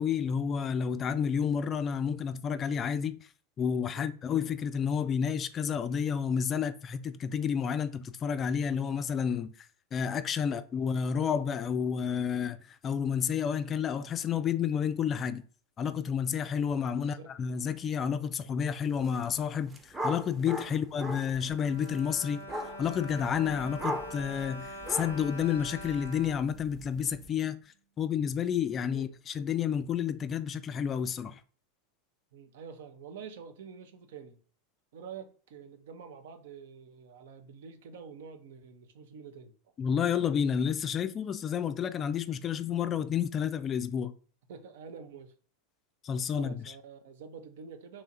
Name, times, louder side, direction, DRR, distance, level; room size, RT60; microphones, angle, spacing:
voice 1, 0.0-3.2 3.6-9.5 9.9-15.4 15.8-22.4 22.8-27.6 28.0-31.4 39.8-44.1 46.0-46.6, left 7 dB, 30° left, 0.3 m, -30 dB
sound 1, 18.9-19.2 19.5-27.3, equal, 15° right, 0.7 m, -40 dB
Bowed string instrument, 21.3-27.3 28.0-28.1 28.4-28.5, equal, 90° left, 0.5 m, -45 dB
voice 2, 32.3-34.4 34.9-39.5 44.5-45.3 46.3-48.0, right 6 dB, 65° right, 0.5 m, -47 dB
2.9 x 2.4 x 4.0 m
figure-of-eight pair, 85°, 0 cm